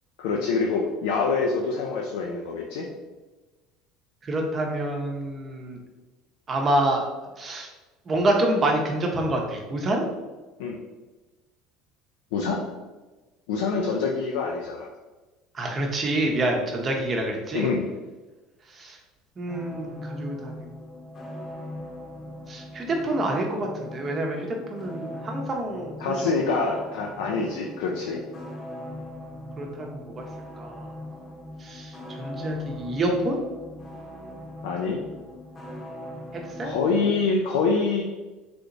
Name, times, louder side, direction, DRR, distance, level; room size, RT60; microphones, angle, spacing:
voice 1, 0.2-2.9 10.6-10.8 12.3-12.6 13.5-14.9 17.5-17.9 26.0-28.2 34.6-35.0 36.6-38.0, left 4 dB, 85° left, 0 dB, 0.4 m, -25 dB
voice 2, 4.2-5.8 6.5-7.0 7.4-7.7 8.1-10.1 15.5-17.7 18.7-19.0 19.4-20.7 22.5-26.3 29.6-30.3 30.5-30.9 31.6-33.4 36.3-36.7, right 1 dB, 35° right, 1 dB, 0.7 m, -27 dB
sound 1, 19.5-37.3, left 1 dB, 35° left, 0.8 m, -40 dB
3.4 x 2.9 x 2.5 m, 1.2 s
supercardioid pair, 90°, 0 cm